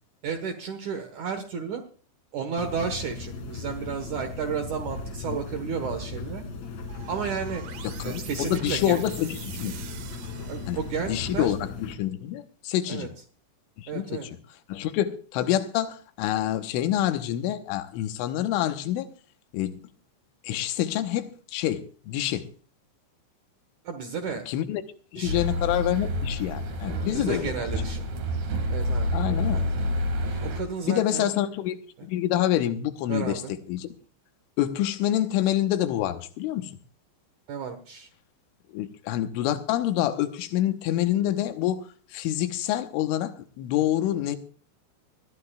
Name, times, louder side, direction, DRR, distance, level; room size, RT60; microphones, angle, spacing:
voice 1, 0.2-1.8 2.3-6.4 7.1-7.6 8.0-9.0 10.4-11.5 12.9-13.1 13.9-14.2 23.8-24.4 25.2-25.4 27.1-28.0 28.7-29.1 29.5-29.7 30.2-31.4 33.1-33.5 37.5-38.1, right 6 dB, 75° right, 1.8 m, -32 dB
sound 1, 2.6-11.9, left 3 dB, 45° left, 2.8 m, -37 dB
sound 2, 6.9-11.2, right 9 dB, 90° right, 1.7 m, -45 dB
voice 2, 8.0-9.8 10.7-13.1 13.8-14.3 14.7-19.1 19.5-19.7 20.4-22.5 24.5-24.8 25.1-27.5 29.1-29.7 30.8-31.8 32.0-33.4 33.7-33.9 34.6-36.7 38.7-44.4, left 12 dB, 90° left, 3.4 m, -27 dB
sound 3, 25.2-30.6, left 1 dB, 50° right, 3.0 m, -28 dB
22.0 x 15.0 x 2.4 m
omnidirectional pair, 5.6 m